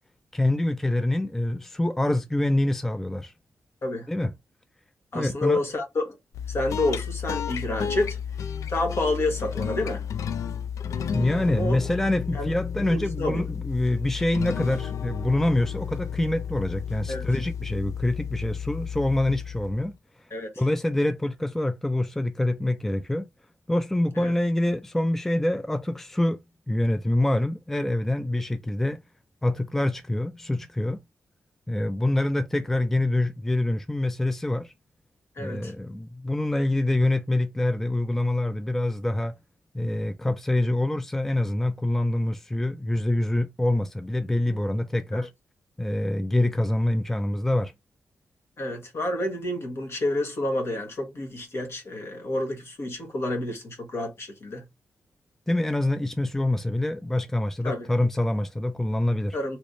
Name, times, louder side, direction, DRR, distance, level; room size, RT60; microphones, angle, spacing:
voice 1, 0.3-3.3 4.1-4.3 5.1-5.6 11.1-19.9 20.6-23.3 23.7-26.4 26.7-29.0 29.4-31.0 31.7-34.7 35.4-39.4 39.7-45.3 45.8-47.7 55.5-59.4, left 1 dB, 5° left, 0.3 m, -25 dB
voice 2, 5.1-6.2 6.5-8.2 8.7-10.0 11.5-11.8 12.3-13.4 17.1-17.2 20.3-20.5 24.1-24.3 35.4-35.7 45.1-45.3 48.6-54.6 57.6-57.9 59.3-59.6, left 2 dB, 55° left, 1.3 m, -29 dB
sound 1, 6.3-19.9, left 8 dB, 85° left, 0.4 m, -32 dB
3.3 x 3.0 x 2.6 m
cardioid pair, 105°, 5 cm